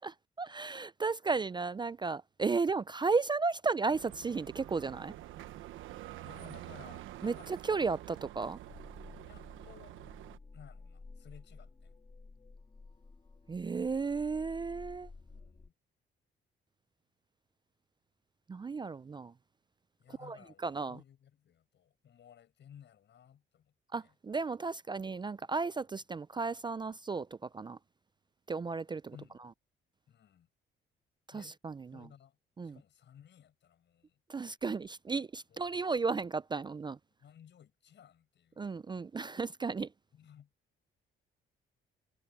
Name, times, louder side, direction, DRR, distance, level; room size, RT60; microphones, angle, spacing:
voice 1, 0.0-5.1 7.2-8.6 13.5-15.1 18.5-19.3 20.2-20.4 20.6-21.0 23.9-27.8 28.5-29.0 31.3-32.1 32.6-32.8 34.3-37.0 38.6-39.9, right 4 dB, 25° right, 0.4 m, -34 dB
sound 1, 3.9-10.4, right 14 dB, 85° right, 1.2 m, -47 dB
voice 2, 6.2-7.5 7.9-8.0 9.3-10.0 10.5-12.0 15.2-15.7 20.0-24.1 29.1-29.4 30.1-30.5 31.3-31.6 31.9-32.4 32.6-34.2 35.5-35.6 37.2-38.7 40.1-40.5, left 9 dB, 65° left, 7.4 m, -57 dB
sound 2, 8.7-15.7, left 3 dB, 25° left, 2.1 m, -53 dB
cardioid pair, 90°, 20 cm